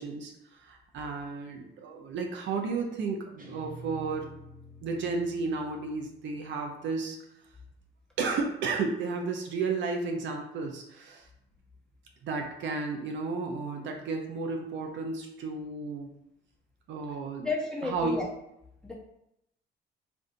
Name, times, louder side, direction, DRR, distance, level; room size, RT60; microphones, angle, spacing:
voice 1, 0.0-4.3 4.8-7.2 8.2-11.3 12.2-16.1 16.9-17.5 17.8-18.2, right 4 dB, 70° right, 2 dB, 0.5 m, -33 dB
Guitar, 3.4-6.6, equal, 45° right, 0.9 m, -49 dB
voice 2, 17.4-18.2 18.8-18.9, left 3 dB, 5° left, -4 dB, 1.0 m, -32 dB
2.5 x 2.2 x 3.8 m, 0.80 s
cardioid pair, 90°, 20 cm